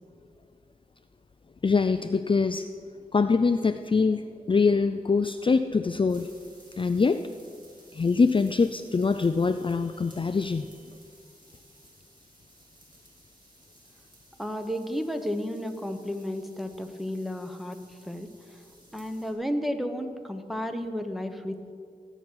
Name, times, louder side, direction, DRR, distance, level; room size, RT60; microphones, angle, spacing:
voice 1, 1.6-2.7 3.1-6.3 6.8-7.3 7.9-10.7, left 4 dB, 35° left, 9 dB, 0.4 m, -24 dB
sound 1, 6.1-19.3, right 1 dB, 30° right, 4.5 m, -57 dB
voice 2, 14.4-17.8 18.0-18.6 18.9-21.7, equal, ahead, 6 dB, 1.0 m, -32 dB
17.5 x 6.1 x 8.8 m, 2.4 s
wide cardioid pair, 85°, 15 cm